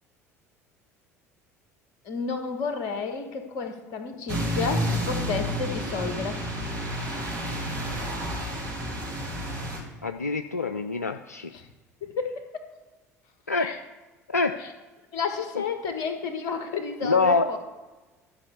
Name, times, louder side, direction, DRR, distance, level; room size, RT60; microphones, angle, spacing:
voice 1, 2.0-6.4 11.5-11.6 12.2-12.6 13.6-13.8 14.6-14.7 15.1-17.6, left 5 dB, 55° left, 6 dB, 1.5 m, -31 dB
sound 1, 4.3-9.8, equal, 50° right, 4.0 m, -30 dB
voice 2, 10.0-11.5 13.5-13.7 14.3-14.6 17.0-17.5, left 4 dB, 85° left, 7 dB, 0.4 m, -25 dB
12.0 x 5.3 x 7.1 m, 1.2 s
figure-of-eight pair, 60°, 8 cm